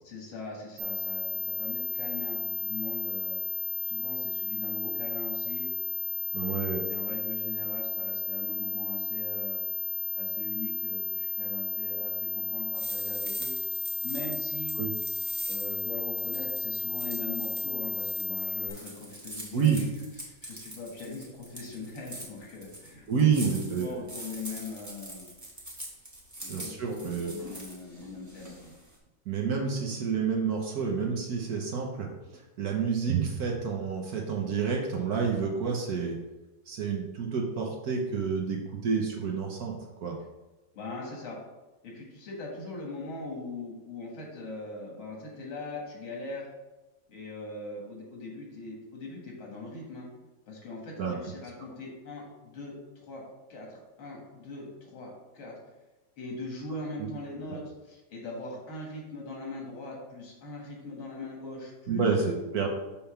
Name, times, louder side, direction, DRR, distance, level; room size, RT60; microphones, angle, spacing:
voice 1, 0.0-3.4 3.8-5.7 6.3-9.6 10.1-13.5 14.0-14.8 15.5-19.9 20.3-25.3 26.4-28.8 40.7-41.4 41.8-46.5 47.1-50.1 50.5-53.2 53.5-55.5 56.2-62.4, left 3 dB, 85° left, -1 dB, 2.4 m, -41 dB
sound 1, 0.8-18.7, left 1 dB, 85° right, 1.4 m, -33 dB
voice 2, 6.3-6.8 14.8-14.9 19.5-19.8 23.1-23.9 26.5-27.3 29.3-36.2 36.7-40.2 51.0-51.1 57.5-57.6 61.9-62.7, right 6 dB, 60° right, 1 dB, 1.2 m, -29 dB
sound 2, 12.7-29.0, right 1 dB, 10° right, 0.8 m, -44 dB
5.7 x 3.6 x 5.6 m, 1.1 s
omnidirectional pair, 2.2 m